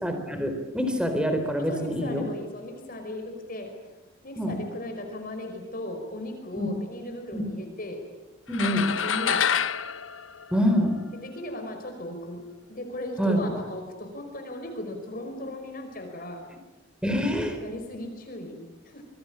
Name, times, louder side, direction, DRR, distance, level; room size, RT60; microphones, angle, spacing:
voice 1, 0.0-2.3 4.4-4.6 6.6-6.7 7.3-7.4 8.5-8.9 10.5-10.9 13.2-13.4 17.0-17.6, equal, 5° right, 6 dB, 4.0 m, -25 dB
voice 2, 1.7-3.7 4.2-8.0 9.0-9.4 11.1-12.4 12.7-16.4 17.6-19.0, left 1 dB, 45° left, 4 dB, 5.1 m, -37 dB
sound 1, 8.5-11.1, left 7 dB, 70° left, 0.9 m, -27 dB
26.5 x 21.5 x 8.8 m, 1.1 s
head